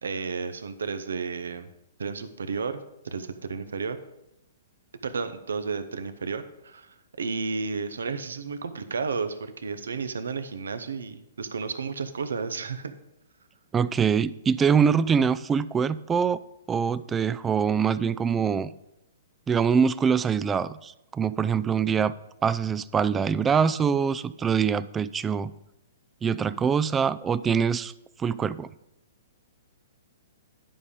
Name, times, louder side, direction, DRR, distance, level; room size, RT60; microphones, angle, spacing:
voice 1, 0.0-1.7 2.0-4.0 5.0-12.9, right 5 dB, 80° right, 11 dB, 0.8 m, -32 dB
voice 2, 13.7-16.4 16.7-18.7 19.5-22.1 22.4-25.5 26.2-27.9 28.2-28.7, right 6 dB, 15° right, 16 dB, 0.3 m, -24 dB
11.0 x 5.4 x 5.0 m, 0.86 s
hypercardioid pair, 125°, 0 cm